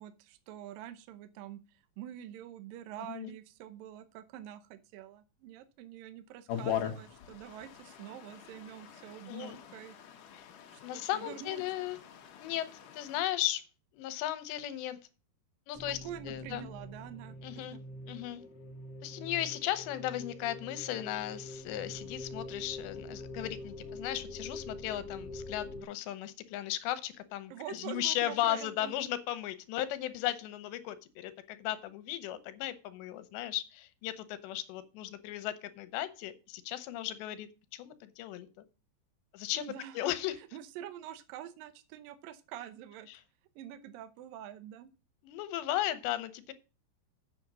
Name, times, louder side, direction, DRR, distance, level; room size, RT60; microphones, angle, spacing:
voice 1, 0.0-10.0 10.7-11.6 16.0-17.4 17.7-17.8 27.5-28.9 39.5-40.0 40.5-43.1 43.6-44.9, right 11 dB, 75° right, 10 dB, 2.1 m, -46 dB
sound 1, 6.5-13.2, left 9 dB, 65° left, 2.4 m, -41 dB
voice 2, 9.3-9.6 10.3-10.5 10.8-12.0 12.4-13.6 13.9-15.0 15.7-16.0 16.2-16.7 17.4-17.8 18.1-18.4 19.0-38.5 39.3-40.4 43.1-43.2 45.2-46.5, left 13 dB, 85° left, 14 dB, 3.1 m, -36 dB
sound 2, 15.7-25.8, left 1 dB, 45° left, 1.4 m, -45 dB
8.5 x 6.8 x 6.1 m, 0.33 s
omnidirectional pair, 4.9 m